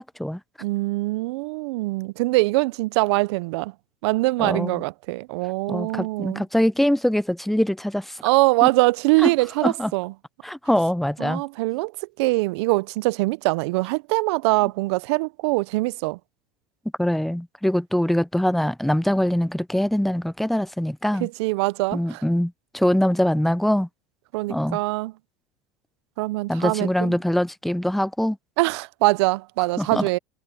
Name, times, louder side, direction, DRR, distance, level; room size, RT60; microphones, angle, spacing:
voice 1, 0.6-3.7 4.0-6.4 8.2-10.1 11.2-16.2 21.2-22.2 24.3-25.1 26.2-27.2 28.6-30.2, right 22 dB, 80° right, 0.4 m, -23 dB
voice 2, 4.4-4.8 5.7-8.2 8.6-8.7 9.2-9.3 9.6-9.9 10.4-11.4 17.0-21.3 21.9-23.9 24.5-24.8 26.5-28.4 29.8-30.1, left 1 dB, ahead, 0.4 m, -23 dB
supercardioid pair, 140°, 14 cm